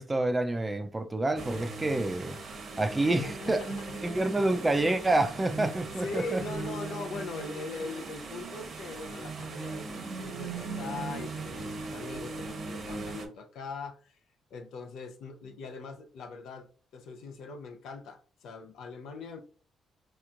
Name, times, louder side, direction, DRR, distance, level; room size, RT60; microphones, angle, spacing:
voice 1, 0.0-2.4 2.8-3.6 4.0-6.4, right 2 dB, 20° right, 0.4 m, -28 dB
sound 1, 1.4-13.3, right 3 dB, 50° right, 0.9 m, -39 dB
voice 2, 3.0-4.3 5.7-14.2 14.5-16.7 16.9-19.4, left 3 dB, 80° left, 0.6 m, -41 dB
4.3 x 3.0 x 2.4 m
cardioid pair, 90°, 0 cm